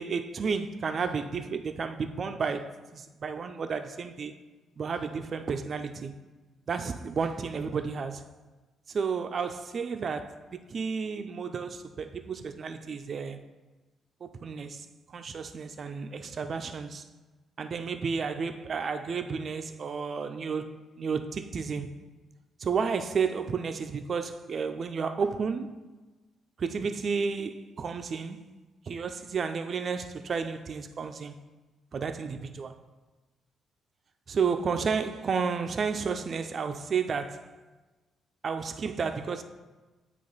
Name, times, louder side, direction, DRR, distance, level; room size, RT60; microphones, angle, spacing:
voice 1, 0.0-4.3 4.8-6.1 6.7-8.2 8.9-10.4 10.7-13.4 14.2-14.9 15.1-17.0 17.6-21.9 22.6-25.7 26.6-28.4 28.9-31.3 31.9-32.7 34.3-37.5 38.4-39.4, right 5 dB, 50° right, 0.4 m, -32 dB
8.6 x 2.9 x 3.9 m
cardioid pair, 90°, 0 cm